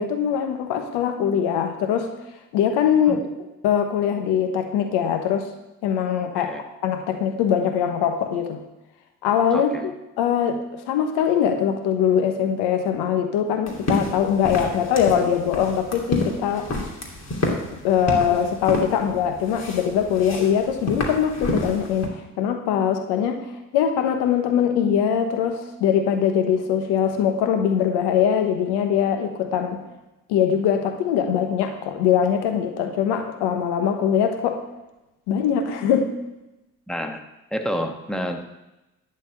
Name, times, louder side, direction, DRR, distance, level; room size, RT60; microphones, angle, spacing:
voice 1, 0.0-2.1 2.5-3.2 3.6-5.5 5.8-6.5 6.8-8.6 9.2-9.9 10.2-16.7 17.8-29.8 30.3-34.6 35.3-36.1, left 8 dB, 75° left, 6 dB, 1.2 m, -22 dB
voice 2, 9.5-9.9 36.9-37.2 37.5-38.4, equal, ahead, 4 dB, 1.5 m, -29 dB
sound 1, 13.7-22.1, left 2 dB, 40° left, 2.8 m, -29 dB
12.0 x 4.5 x 8.2 m, 0.98 s
hypercardioid pair, 50°, 41 cm